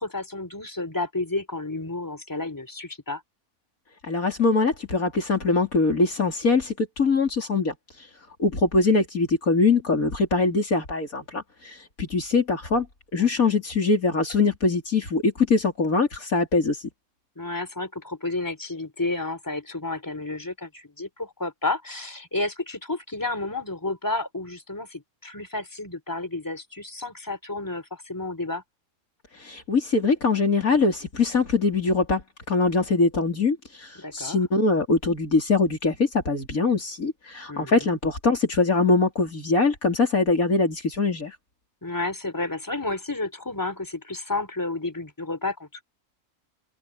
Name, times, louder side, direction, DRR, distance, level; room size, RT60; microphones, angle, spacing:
voice 1, 0.0-3.2 13.1-13.3 17.4-28.6 34.0-34.4 37.5-37.9 41.8-45.8, left 2 dB, 10° left, 3.7 m, -31 dB
voice 2, 4.1-7.7 8.4-12.9 13.1-16.8 29.4-32.2 32.5-41.3, left 3 dB, 70° left, 4.1 m, -22 dB
open air
omnidirectional pair, 1.5 m